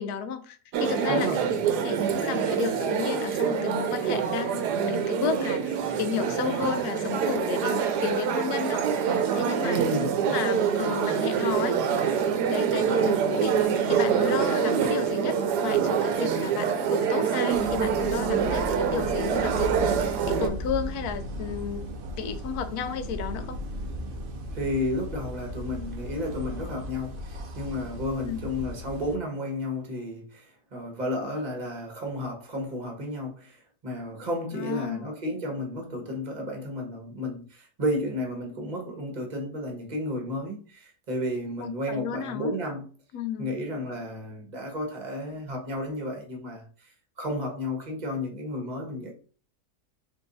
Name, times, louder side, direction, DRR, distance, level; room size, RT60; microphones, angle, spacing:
voice 1, 0.0-1.3 1.8-8.8 9.3-9.8 10.2-11.8 12.5-13.5 13.8-19.8 20.3-21.9 22.2-23.6 28.2-28.4 34.5-35.1 41.6-42.5 43.1-43.5, left 6 dB, 75° left, 1.1 m, -32 dB
sound 1, 0.7-20.5, right 7 dB, 85° right, 1.2 m, -26 dB
voice 2, 1.1-1.6 9.6-10.1 24.5-42.8 43.4-49.1, left 1 dB, 30° right, 1.1 m, -32 dB
sound 2, 17.5-29.2, left 1 dB, 70° right, 0.5 m, -36 dB
3.5 x 3.1 x 3.9 m
omnidirectional pair, 1.7 m